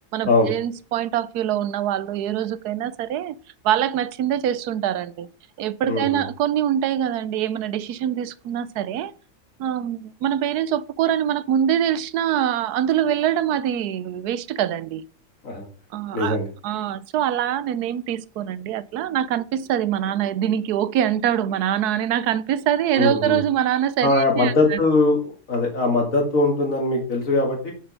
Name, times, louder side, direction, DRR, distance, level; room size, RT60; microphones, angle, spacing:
voice 1, 0.1-3.4 3.6-5.3 5.6-9.1 9.6-15.0 15.9-16.4 16.6-24.8, right 10 dB, 80° right, 1.2 m, -24 dB
voice 2, 5.9-6.2 15.4-15.7 16.1-16.5 22.9-23.4 24.0-25.2 25.5-27.7, left 2 dB, 55° left, 2.5 m, -21 dB
7.2 x 5.1 x 6.2 m
omnidirectional pair, 1.6 m